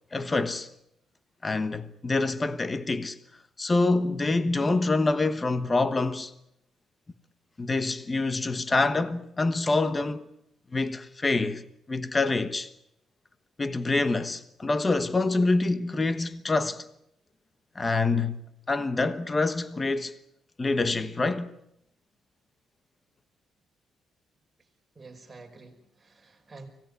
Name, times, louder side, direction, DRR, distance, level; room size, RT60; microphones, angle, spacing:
voice 1, 0.1-0.7 1.4-3.2 3.6-6.3 7.6-10.3 10.7-12.7 13.6-16.8 17.7-18.4 18.7-20.1 20.6-21.5, left 3 dB, 20° left, 1.2 m, -26 dB
voice 2, 25.0-26.7, right 3 dB, 20° right, 5.3 m, -48 dB
25.0 x 18.0 x 9.8 m
cardioid pair, 135°, 0 cm